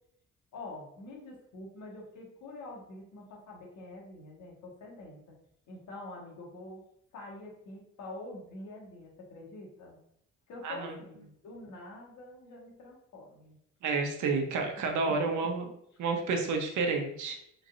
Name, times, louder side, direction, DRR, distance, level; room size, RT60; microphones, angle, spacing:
voice 1, 0.5-5.2 5.7-6.8 7.1-10.0 10.5-13.6 15.1-15.2 15.4-15.5, left 2 dB, 75° left, -2 dB, 1.7 m, -46 dB
voice 2, 13.8-15.6 16.0-17.4, right 4 dB, 75° right, 3 dB, 1.0 m, -30 dB
4.6 x 4.4 x 2.6 m, 0.73 s
cardioid pair, 90°, 30 cm